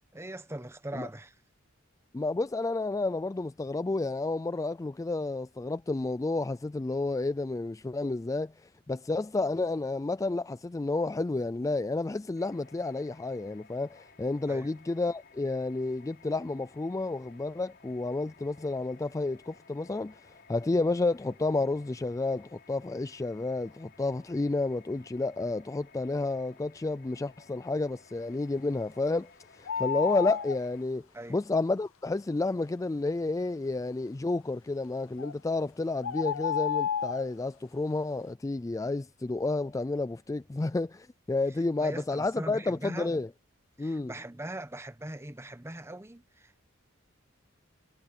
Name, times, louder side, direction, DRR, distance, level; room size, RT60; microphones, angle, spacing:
voice 1, 0.1-1.4 14.5-14.7 31.1-31.4 41.5-43.1 43.8-46.6, right 1 dB, 15° right, 1.1 m, -41 dB
voice 2, 2.1-43.3 43.8-44.1, left 2 dB, 15° left, 0.3 m, -31 dB
sound 1, 12.3-30.8, left 5 dB, 55° left, 4.3 m, -58 dB
sound 2, 29.7-30.6 35.2-35.3 36.0-37.3, left 8 dB, 85° left, 0.6 m, -31 dB
head